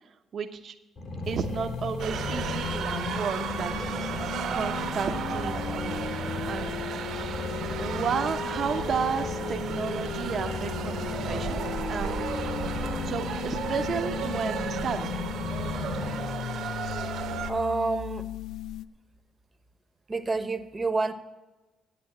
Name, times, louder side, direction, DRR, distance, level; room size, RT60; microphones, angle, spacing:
voice 1, 0.3-0.7 1.3-4.1 4.5-6.2 6.4-7.1 7.8-11.6 11.9-12.5 13.0-15.2, right 6 dB, 55° right, 6 dB, 0.9 m, -33 dB
sound 1, 1.0-16.1, left 2 dB, 55° left, 2.9 m, -36 dB
sound 2, 1.2-18.8, left 11 dB, 80° left, 0.4 m, -37 dB
sound 3, 2.0-17.5, right 7 dB, 75° right, 1.3 m, -34 dB
voice 2, 17.5-18.2 20.1-21.1, right 3 dB, 25° right, 10 dB, 1.0 m, -28 dB
9.4 x 8.3 x 7.6 m, 1.1 s
cardioid pair, 90°, 0 cm